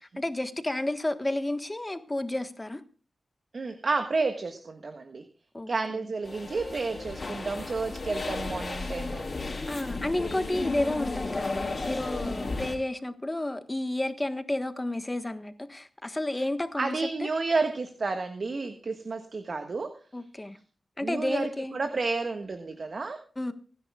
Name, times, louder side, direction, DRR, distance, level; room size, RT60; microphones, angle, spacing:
voice 1, 0.0-2.8 5.5-6.1 9.7-17.3 20.1-20.6 21.0-21.8 23.4-23.5, left 1 dB, 20° left, 1.4 m, -31 dB
voice 2, 3.5-5.2 5.7-9.2 16.8-19.9 21.0-23.2, right 3 dB, 55° right, 1.5 m, -31 dB
sound 1, 6.2-12.7, left 3 dB, 45° left, 3.5 m, -34 dB
28.0 x 10.5 x 2.4 m
wide cardioid pair, 100°, 0 cm